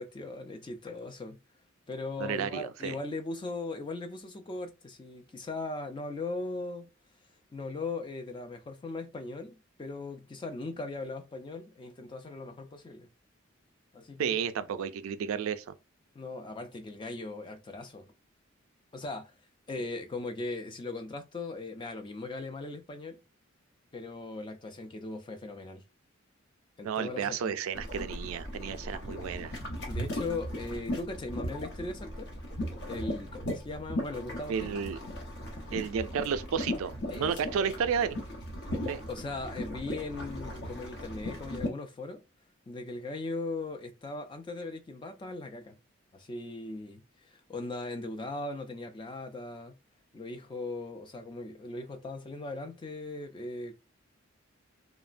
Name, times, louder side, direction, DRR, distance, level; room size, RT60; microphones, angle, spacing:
voice 1, 0.0-1.4 1.9-6.9 7.5-13.1 13.9-14.4 16.1-18.1 18.9-19.3 19.7-23.2 23.9-25.8 26.8-27.6 29.9-32.3 32.9-34.7 37.1-37.7 39.1-42.2 42.7-45.8 46.1-49.8 50.1-53.8, left 2 dB, 25° left, 0.3 m, -39 dB
voice 2, 2.2-3.0 14.2-15.6 26.8-29.5 34.5-35.0 35.7-38.2 38.9-39.0, right 7 dB, 80° right, 0.3 m, -32 dB
sound 1, 27.7-41.7, equal, 55° left, 0.8 m, -37 dB
3.0 x 2.0 x 2.4 m
head